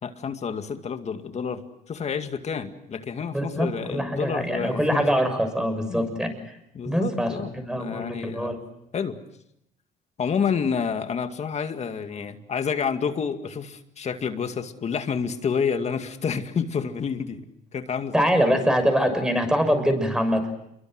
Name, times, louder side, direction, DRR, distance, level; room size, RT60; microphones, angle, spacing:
voice 1, 0.0-5.1 5.9-6.1 6.7-8.6 8.9-9.2 10.2-17.4 17.7-18.3, left 6 dB, 40° left, 7 dB, 2.2 m, -29 dB
voice 2, 3.3-6.3 6.8-8.6 18.1-20.5, equal, 5° right, 7 dB, 6.6 m, -24 dB
29.0 x 23.5 x 7.9 m, 0.80 s
cardioid pair, 110°, 17 cm